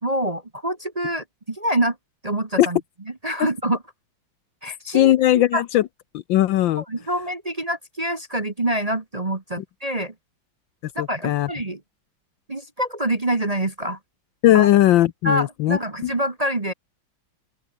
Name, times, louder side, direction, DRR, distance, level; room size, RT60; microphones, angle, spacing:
voice 1, 0.0-2.0 2.2-2.8 3.1-3.8 4.6-5.6 6.8-10.1 10.9-11.8 12.5-14.0 14.5-14.7 15.2-16.7, right 1 dB, 20° right, 1.1 m, -26 dB
voice 2, 4.9-5.8 6.1-6.8 11.0-11.5 14.4-16.1, left 14 dB, 70° left, 1.3 m, -18 dB
open air
omnidirectional pair, 2.3 m